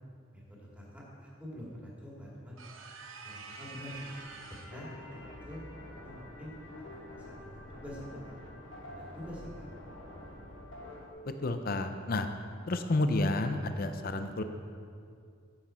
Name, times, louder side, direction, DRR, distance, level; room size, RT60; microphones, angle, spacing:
voice 1, 0.3-2.6 3.2-4.2 4.7-5.6 6.0-6.5 6.9-8.6 8.9-9.7, equal, 5° right, -5 dB, 2.1 m, -46 dB
sound 1, 2.6-4.8, right 4 dB, 75° right, 0.8 m, -47 dB
sound 2, 3.8-11.1, left 1 dB, 75° left, 1.3 m, -48 dB
voice 2, 11.2-12.3 12.7-14.4, left 2 dB, 45° left, 8 dB, 0.6 m, -30 dB
9.9 x 8.3 x 4.4 m, 2.3 s
head